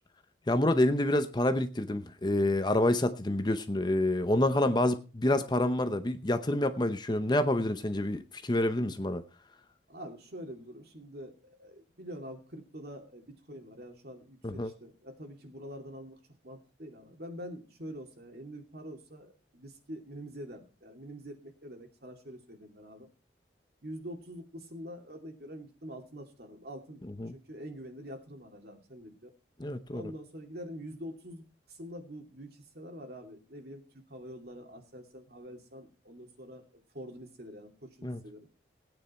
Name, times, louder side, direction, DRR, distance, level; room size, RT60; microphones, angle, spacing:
voice 1, 0.5-9.2 14.4-14.7 27.2-27.3 29.6-30.0 38.0-38.2, left 1 dB, 25° left, 0.7 m, -28 dB
voice 2, 9.9-16.2 16.4-23.1 23.8-27.0 27.3-29.3 29.9-31.4 31.7-38.5, equal, 55° right, 2.6 m, -45 dB
17.5 x 9.3 x 4.3 m
head